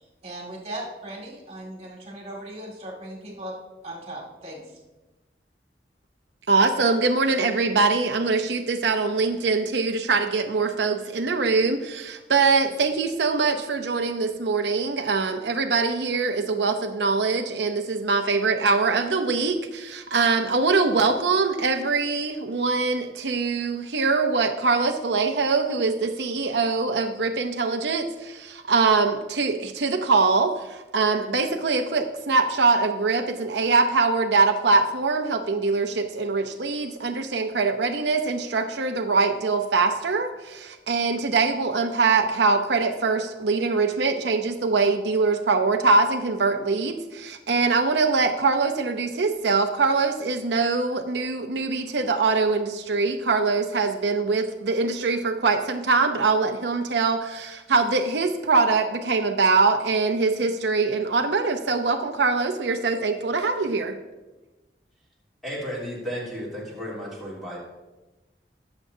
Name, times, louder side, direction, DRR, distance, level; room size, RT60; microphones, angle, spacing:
voice 1, 0.2-3.5 3.8-4.6, right 1 dB, 35° right, -1 dB, 2.2 m, -37 dB
voice 2, 6.5-64.0, right 4 dB, 80° right, 5 dB, 0.7 m, -23 dB
voice 3, 65.4-67.6, equal, ahead, -8 dB, 3.2 m, -33 dB
20.0 x 7.0 x 2.7 m, 1.1 s
head